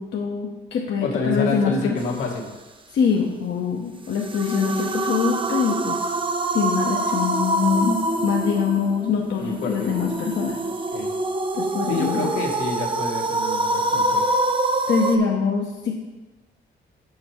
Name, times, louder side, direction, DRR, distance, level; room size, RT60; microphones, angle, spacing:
voice 1, 0.0-2.0 2.9-6.1 6.5-10.6 11.5-12.3 14.9-15.9, left 6 dB, 65° left, 0 dB, 0.9 m, -24 dB
voice 2, 1.0-2.5 9.4-9.9 10.9-11.1 11.9-14.2, left 3 dB, 80° left, -2 dB, 1.7 m, -28 dB
sound 1, 4.1-15.2, right 2 dB, 25° right, 0.7 m, -25 dB
7.7 x 5.6 x 4.4 m, 1.1 s
cardioid pair, 90°, 20 cm